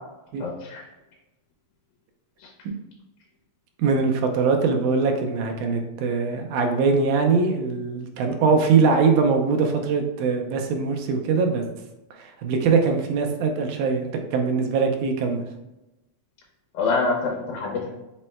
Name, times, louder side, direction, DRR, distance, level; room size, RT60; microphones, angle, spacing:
voice 1, 0.4-0.8 2.4-2.5 16.7-17.9, left 4 dB, 85° left, -2 dB, 2.2 m, -26 dB
voice 2, 3.8-11.7 12.1-15.4, right 5 dB, 90° right, 4 dB, 2.1 m, -22 dB
5.4 x 2.1 x 4.2 m, 0.98 s
omnidirectional pair, 3.5 m